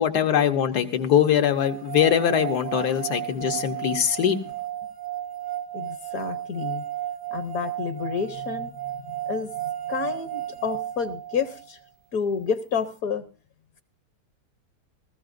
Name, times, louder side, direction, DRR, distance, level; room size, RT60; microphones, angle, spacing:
voice 1, 0.0-4.4, left 9 dB, 80° left, 7 dB, 1.6 m, -22 dB
sound 1, 1.6-11.7, right 12 dB, 75° right, 1.5 m, -33 dB
voice 2, 5.7-6.8 7.3-8.7 9.3-9.5 9.9-11.8 12.1-13.2, left 6 dB, 65° left, 11 dB, 1.2 m, -29 dB
20.0 x 14.5 x 2.6 m, 0.31 s
omnidirectional pair, 1.7 m